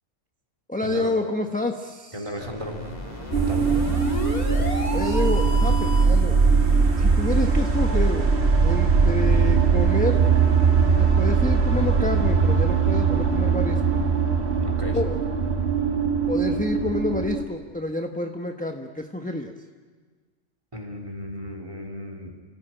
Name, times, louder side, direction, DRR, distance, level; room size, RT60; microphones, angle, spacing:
voice 1, 0.7-2.3 4.9-6.4 7.0-8.3 8.6-10.2 11.0-14.0 14.9-15.2 16.3-19.5, left 2 dB, 5° left, 3 dB, 1.0 m, -28 dB
voice 2, 2.1-2.8 3.3-3.7 14.6-15.0 20.7-22.4, equal, 25° right, 3 dB, 3.3 m, -35 dB
sound 1, 2.3-6.2, left 1 dB, 30° left, 3.3 m, -33 dB
sound 2, 3.3-17.4, right 5 dB, 55° right, 2.0 m, -20 dB
29.5 x 16.0 x 9.0 m, 1.5 s
omnidirectional pair, 1.3 m